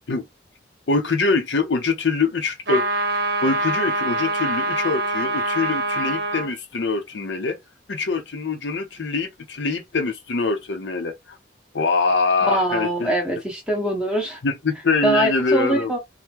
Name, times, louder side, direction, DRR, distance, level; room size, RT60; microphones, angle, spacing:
voice 1, 0.9-2.9 3.4-7.6 7.9-11.4 11.7-13.1 14.4-15.9, left 4 dB, 75° left, 0.7 m, -24 dB
sound 1, 2.7-6.5, right 2 dB, 60° right, 1.0 m, -24 dB
voice 2, 12.4-14.4 15.0-16.0, right 1 dB, 5° right, 1.1 m, -23 dB
3.5 x 2.2 x 2.9 m
head